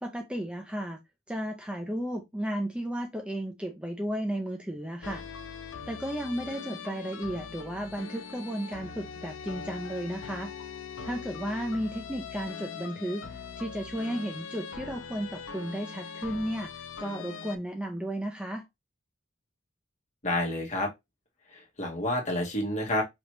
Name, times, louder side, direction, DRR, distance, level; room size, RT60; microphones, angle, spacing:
voice 1, 0.0-1.0 1.3-5.2 5.9-10.5 11.0-13.2 13.6-18.6, equal, 5° right, 0.6 m, -34 dB
sound 1, 5.0-17.6, left 6 dB, 75° left, 0.7 m, -41 dB
voice 2, 20.2-20.9 21.5-23.0, left 1 dB, 40° left, 1.6 m, -29 dB
5.1 x 3.0 x 3.0 m
head